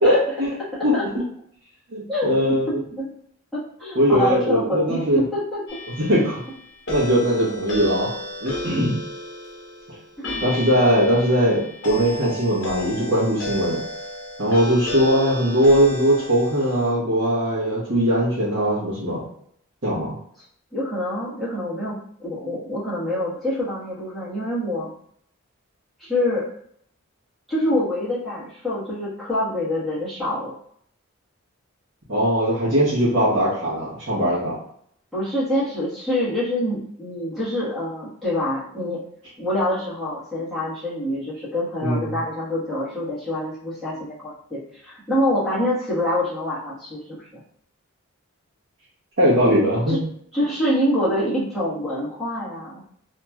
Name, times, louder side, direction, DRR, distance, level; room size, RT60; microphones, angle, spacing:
voice 1, 0.0-0.6 0.8-0.9 1.9-2.8 3.9-5.2 6.0-6.4 6.9-8.1 8.4-8.9 10.4-13.8 14.4-19.2 19.8-20.1 32.1-34.6 41.8-42.2 49.2-50.0, equal, 55° right, -10 dB, 1.0 m, -20 dB
voice 2, 2.1-3.1 3.5-5.8 8.7-8.8 10.2-10.4 20.4-20.5 20.7-24.9 26.0-26.4 27.5-30.5 35.1-39.0 39.4-47.4 49.9-50.0 50.3-52.8, left 1 dB, ahead, -10 dB, 1.3 m, -26 dB
sound 1, 5.7-16.9, left 1 dB, 60° left, 0.8 m, -33 dB
2.9 x 2.8 x 2.3 m, 0.67 s
head